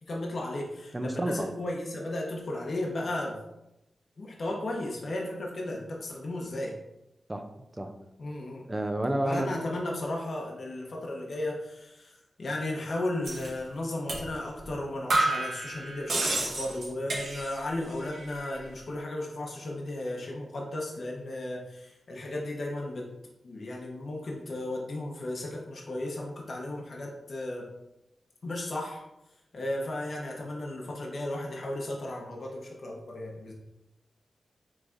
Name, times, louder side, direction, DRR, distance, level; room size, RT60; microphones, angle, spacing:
voice 1, 0.0-3.4 4.2-6.8 8.2-8.6 9.2-23.1 23.4-27.7 28.4-29.0 29.5-33.5, left 1 dB, 55° left, -2 dB, 0.8 m, -35 dB
voice 2, 0.9-1.5 7.3-7.5 7.8-7.9 8.7-9.6, right 1 dB, 15° right, 6 dB, 0.4 m, -30 dB
sound 1, 13.2-13.5 14.1-14.3 14.6-14.7 15.1-17.7 18.0-18.6, right 2 dB, 80° right, 1.3 m, -30 dB
5.7 x 3.2 x 2.5 m, 0.90 s
wide cardioid pair, 115°, 0 cm